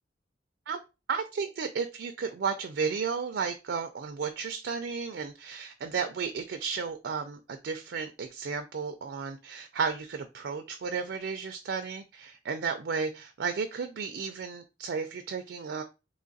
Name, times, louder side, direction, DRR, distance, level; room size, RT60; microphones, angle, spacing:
voice 1, 1.1-15.8, right 5 dB, 70° right, 0.4 m, -33 dB
3.1 x 2.4 x 3.9 m
head